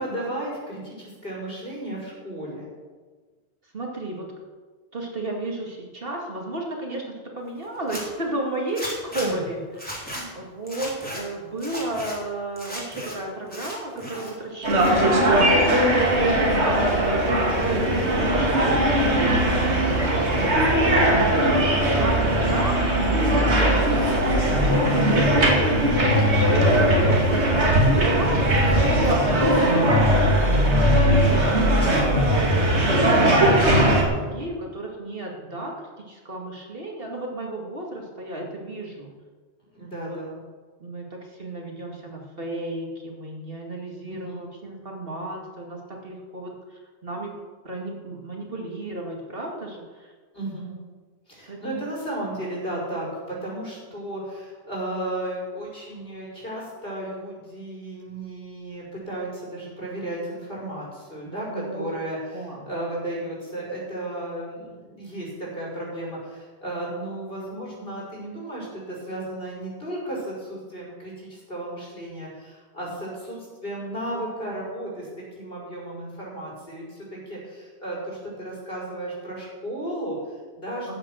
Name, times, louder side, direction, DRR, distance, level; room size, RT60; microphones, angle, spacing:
voice 1, 0.0-2.7 9.2-9.4 10.1-10.3 17.8-18.2 21.1-21.4 39.7-40.4 44.1-44.4 50.3-50.7 51.3-75.1 75.4-81.0, right 1 dB, 55° left, -4 dB, 5.6 m, -34 dB
voice 2, 3.7-4.3 4.9-17.0 17.6-17.9 18.2-20.3 20.6-21.0 21.3-24.6 25.1-39.1 40.0-40.2 40.8-47.3 47.6-50.1 51.5-51.8 61.5-61.8 62.3-62.6 80.9-81.0, right 1 dB, 55° right, 0 dB, 2.4 m, -33 dB
Zipper (clothing), 7.7-8.0 8.7-9.3 9.7-10.2 10.7-11.2 11.6-12.1 12.6-13.1 13.5-14.3 14.6-15.2, equal, 10° left, 3.5 m, -35 dB
sound 1, 14.6-34.0, right 1 dB, 80° right, 2.7 m, -19 dB
14.5 x 9.5 x 6.4 m, 1.4 s
omnidirectional pair, 1.1 m